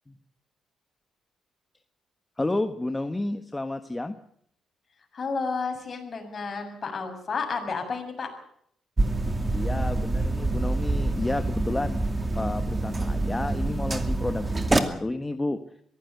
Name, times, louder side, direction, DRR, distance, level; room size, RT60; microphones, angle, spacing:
voice 1, 2.4-4.1 9.5-12.0 12.3-15.6, left 2 dB, 15° left, 8 dB, 1.4 m, -31 dB
voice 2, 5.1-8.3, left 4 dB, 40° left, 4 dB, 7.0 m, -31 dB
sound 1, 9.0-14.8, right 2 dB, 20° right, 2.4 m, -26 dB
22.0 x 16.0 x 8.1 m, 0.68 s
cardioid pair, 90°, 0 cm